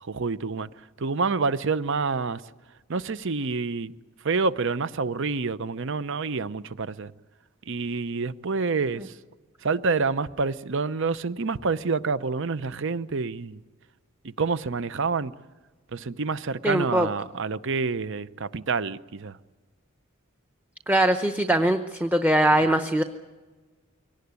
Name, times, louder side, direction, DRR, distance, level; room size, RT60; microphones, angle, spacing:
voice 1, 0.0-0.7 1.0-2.4 2.9-3.9 4.2-7.1 7.7-9.1 9.6-13.6 14.2-15.3 15.9-19.4, right 4 dB, 60° right, 0.8 m, -27 dB
voice 2, 16.6-17.1 20.9-23.0, right 1 dB, 10° right, 0.8 m, -21 dB
23.5 x 18.5 x 9.6 m
head